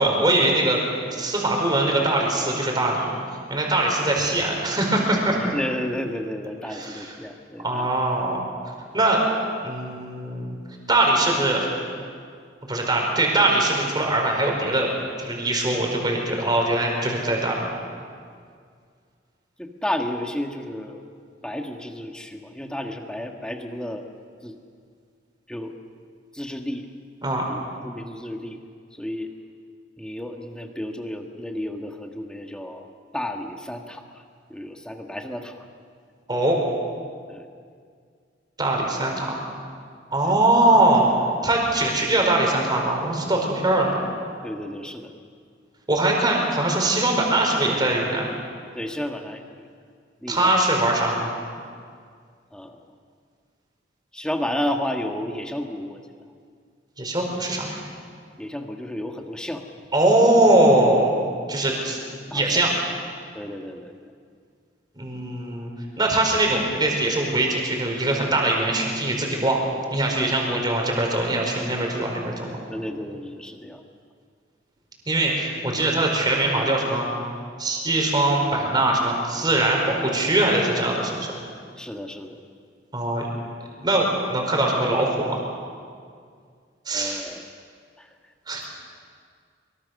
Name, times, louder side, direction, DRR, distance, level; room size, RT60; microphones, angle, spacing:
voice 1, 0.0-3.1 3.5-5.4 6.7-7.1 7.6-8.4 8.9-9.2 9.6-10.6 10.9-11.7 12.7-14.9 15.2-17.7 27.2-27.4 36.3-36.6 38.6-39.3 40.1-41.1 41.4-44.0 45.9-48.3 50.3-51.3 57.0-57.8 59.9-61.1 61.5-62.0 62.3-62.7 65.0-65.7 66.0-69.6 69.9-72.6 75.1-77.1 77.6-81.3 82.9-83.3 83.8-85.4 86.8-87.2 88.5-88.7, right 1 dB, 25° right, 0 dB, 4.9 m, -22 dB
voice 2, 5.4-7.9 19.6-21.0 21.4-24.1 24.4-24.6 25.5-25.7 26.3-26.9 27.5-28.6 29.0-29.3 30.0-32.9 33.1-34.0 34.5-35.5 37.3-37.5 40.2-40.3 44.4-45.1 48.7-49.7 50.2-50.5 52.5-52.8 54.1-56.0 58.4-59.6 62.3-62.6 63.3-63.9 72.7-73.8 81.8-82.4 86.9-87.4 88.0-88.1 88.6-88.7, left 1 dB, 5° left, 3 dB, 1.6 m, -32 dB
24.0 x 23.5 x 6.6 m, 2.1 s
head